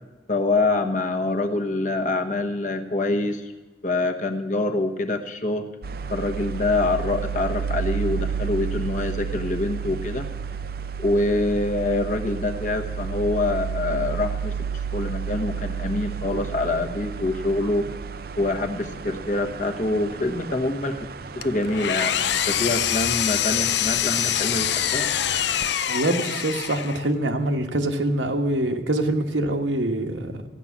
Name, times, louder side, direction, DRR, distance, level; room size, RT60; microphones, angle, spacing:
voice 1, 0.3-3.5 3.8-5.7 6.1-10.3 11.0-14.5 14.9-17.9 18.4-21.1 21.4-25.1, left 2 dB, 40° left, 4 dB, 1.1 m, -25 dB
sound 1, 5.8-25.7, right 6 dB, 55° right, 0.5 m, -32 dB
Engine, 21.4-27.1, left 10 dB, 70° left, 0.5 m, -25 dB
voice 2, 25.9-30.3, right 1 dB, 90° right, 4 dB, 1.4 m, -24 dB
15.0 x 9.9 x 7.2 m, 1.2 s
head